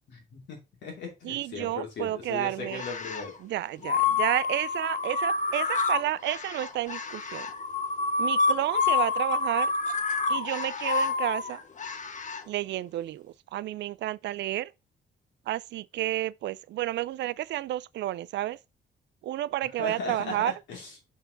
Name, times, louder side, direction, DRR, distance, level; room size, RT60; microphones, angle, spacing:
voice 1, 0.1-3.3 19.8-20.9, left 3 dB, 80° left, 2.7 m, -37 dB
voice 2, 1.2-2.8 3.4-7.5 8.2-9.7 10.3-11.6 12.5-14.7 15.5-18.6 19.2-20.5, right 14 dB, 75° right, 0.4 m, -31 dB
sound 1, 2.7-3.3 3.8-12.4, left 4 dB, 40° left, 1.0 m, -28 dB
5.6 x 4.6 x 3.8 m
cardioid pair, 75°, 18 cm